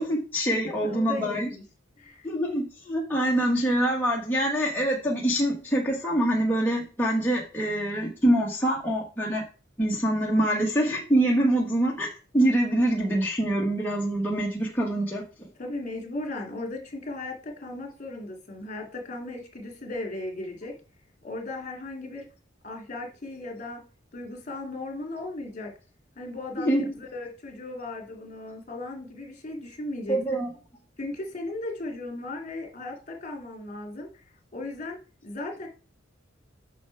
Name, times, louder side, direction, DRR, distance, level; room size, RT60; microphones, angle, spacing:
voice 1, 0.0-1.5 2.2-9.4 9.8-12.1 12.3-15.5 26.6-26.9 30.1-30.5, right 1 dB, 10° left, -3 dB, 1.3 m, -25 dB
voice 2, 0.6-1.6 2.0-2.3 15.6-20.8 21.2-22.3 22.6-23.8 24.1-25.7 26.2-30.2 31.0-34.2 34.5-35.0 35.2-35.7, left 2 dB, 40° left, 3 dB, 2.5 m, -36 dB
8.3 x 5.9 x 4.5 m, 0.35 s
head